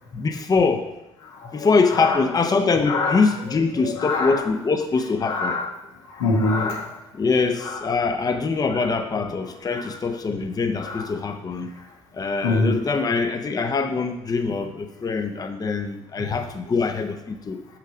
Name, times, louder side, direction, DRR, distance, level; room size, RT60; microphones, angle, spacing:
voice 1, 0.1-0.9 1.5-5.5 7.2-11.7 12.1-17.6, left 4 dB, 25° left, 7 dB, 0.7 m, -23 dB
voice 2, 1.2-2.2 2.8-3.6 3.8-4.4 5.2-5.7 6.0-7.0 7.6-7.8 8.7-8.9 9.4-10.0 10.8-11.1 11.8-11.9 12.4-12.8 16.2-16.3, left 3 dB, 80° left, 0 dB, 1.4 m, -26 dB
6.5 x 5.8 x 4.9 m, 0.91 s
hypercardioid pair, 55°, 15 cm